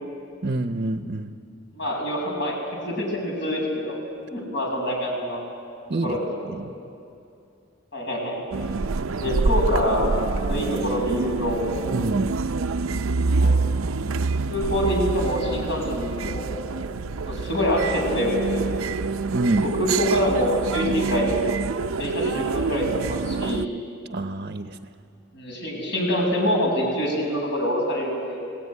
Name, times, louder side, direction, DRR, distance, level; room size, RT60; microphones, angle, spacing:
voice 1, 0.4-1.3 5.9-6.2 6.5-6.7 11.9-12.4 19.3-19.7 24.1-24.8, right 2 dB, 45° right, 8 dB, 0.8 m, -26 dB
voice 2, 1.7-2.6 2.8-4.0 4.3-5.4 6.0-6.3 7.9-8.4 9.2-10.1 10.4-11.7 13.3-13.6 14.5-16.6 17.3-18.7 19.6-21.3 22.0-23.8 25.3-28.4, equal, 60° left, 0 dB, 6.9 m, -25 dB
sound 1, 8.5-23.7, right 4 dB, 85° right, 0.6 m, -26 dB
26.5 x 18.5 x 9.7 m, 2.5 s
head